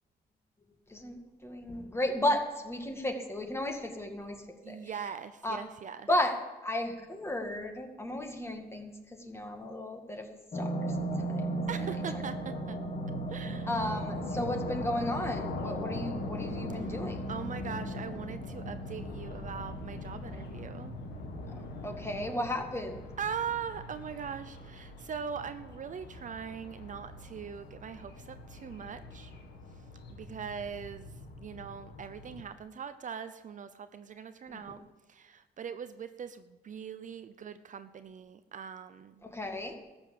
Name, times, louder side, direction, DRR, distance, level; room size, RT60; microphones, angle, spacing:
voice 1, 0.9-4.8 5.4-5.6 6.1-11.6 13.7-17.2 21.5-23.0 34.5-34.7 39.2-39.7, left 1 dB, 15° left, 4 dB, 2.1 m, -34 dB
voice 2, 4.6-6.1 11.7-12.8 13.3-13.7 17.3-21.0 23.2-29.3 30.1-31.1 31.4-34.8 35.1-39.2, right 7 dB, 50° right, 11 dB, 0.7 m, -41 dB
sound 1, 10.5-23.5 23.9-24.0, right 1 dB, 40° left, 2.4 m, -38 dB
sound 2, 13.8-32.4, left 2 dB, 85° left, 2.0 m, -43 dB
13.5 x 7.1 x 8.5 m, 1.2 s
cardioid pair, 100°, 17 cm